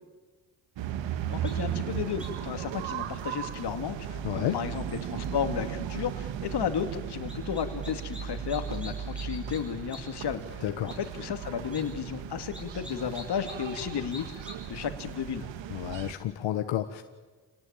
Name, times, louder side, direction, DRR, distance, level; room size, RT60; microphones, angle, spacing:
sound 1, 0.8-16.1, right 9 dB, 85° right, 1.6 m, -36 dB
voice 1, 1.3-15.5, left 8 dB, 60° left, 8 dB, 2.5 m, -33 dB
sound 2, 1.4-1.5 2.2-2.5 7.3-8.2 8.5-9.6 9.9-10.0 10.4-10.5 10.9-11.0 11.6-11.8 12.5-13.9 14.1-14.5, left 2 dB, ahead, 7.4 m, -45 dB
voice 2, 4.2-4.6 10.6-10.9 15.7-17.0, left 12 dB, 85° left, 7 dB, 1.3 m, -31 dB
28.0 x 18.5 x 8.9 m, 1.3 s
cardioid pair, 105°, 44 cm